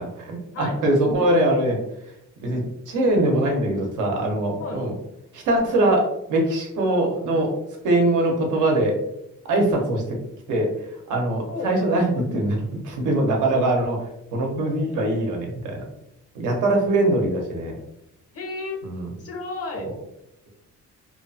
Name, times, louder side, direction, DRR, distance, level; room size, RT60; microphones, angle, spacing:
voice 1, 0.0-1.8 2.4-4.9 5.3-7.5 7.8-9.0 9.5-10.0 10.5-10.7 11.1-12.6 12.8-14.0 14.3-15.8 16.3-17.8 18.8-19.1 19.8-19.9, right 1 dB, 90° right, 0 dB, 0.8 m, -22 dB
voice 2, 11.5-11.8 12.2-12.3 18.3-18.8 19.2-19.9, left 3 dB, 50° left, 2 dB, 0.8 m, -33 dB
2.8 x 2.0 x 2.6 m, 0.82 s
cardioid pair, 90°, 30 cm